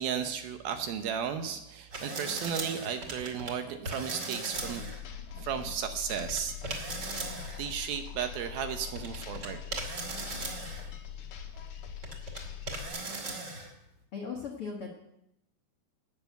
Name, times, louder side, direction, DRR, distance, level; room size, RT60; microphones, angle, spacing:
voice 1, 0.0-4.8 5.3-6.9 7.6-9.6 10.7-10.8, right 8 dB, 75° right, 7 dB, 2.4 m, -34 dB
sound 1, 1.9-3.5 3.8-5.0 6.1-7.6 8.6-8.7 8.9-10.9 11.6-12.4 12.7-13.7, right 2 dB, 35° right, 2.1 m, -38 dB
sound 2, 4.5-12.9, left 8 dB, 60° left, 2.4 m, -43 dB
voice 2, 14.1-14.9, left 5 dB, 85° left, 0 dB, 1.2 m, -37 dB
17.5 x 6.7 x 7.9 m, 0.87 s
omnidirectional pair, 4.9 m